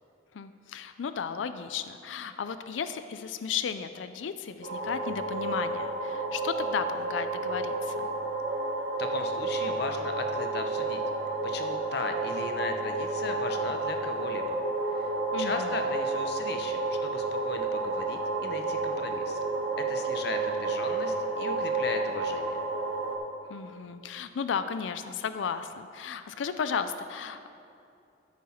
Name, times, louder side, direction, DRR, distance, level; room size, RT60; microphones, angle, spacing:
voice 1, 0.3-8.1 15.3-15.7 23.5-27.5, left 6 dB, 85° left, 10 dB, 0.4 m, -34 dB
sound 1, 4.6-23.2, right 3 dB, 70° right, 1.2 m, -31 dB
voice 2, 9.0-11.0 11.4-14.6 14.9-19.4 19.8-22.6, left 3 dB, 60° left, 5 dB, 0.8 m, -37 dB
13.5 x 6.2 x 4.3 m, 2.6 s
head